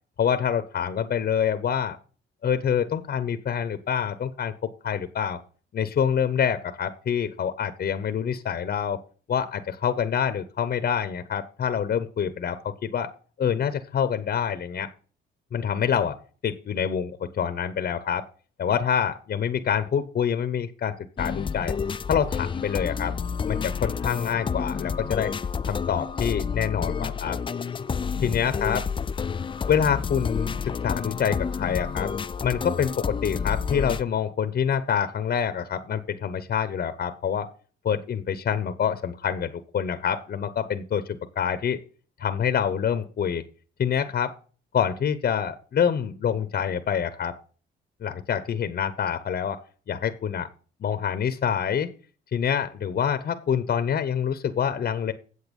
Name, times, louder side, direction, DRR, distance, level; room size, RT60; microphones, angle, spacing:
voice 1, 0.2-2.0 2.4-5.4 5.7-9.0 9.3-13.1 13.4-14.9 15.5-16.2 16.4-18.2 18.6-21.7 22.1-23.2 23.5-25.3 25.7-27.4 28.2-28.8 29.7-32.1 32.4-37.5 37.8-41.8 42.2-43.4 43.8-44.3 44.7-47.3 48.0-49.6 49.9-50.5 50.8-51.9 52.3-55.1, left 8 dB, 50° left, 11 dB, 0.8 m, -26 dB
sound 1, 21.2-34.0, left 6 dB, 25° left, 0.4 m, -29 dB
8.1 x 7.8 x 5.2 m, 0.39 s
cardioid pair, 90°, 20 cm